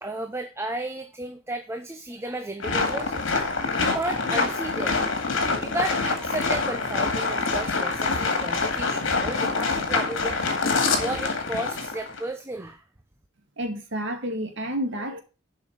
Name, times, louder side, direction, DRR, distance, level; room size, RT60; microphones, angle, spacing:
voice 1, 0.0-3.1 3.8-10.4 11.0-12.8, right 2 dB, 15° right, 0.7 m, -33 dB
sound 1, 2.6-12.2, left 3 dB, 65° left, 2.1 m, -26 dB
voice 2, 13.6-15.2, right 1 dB, 60° right, 2.1 m, -30 dB
7.5 x 5.7 x 6.4 m
head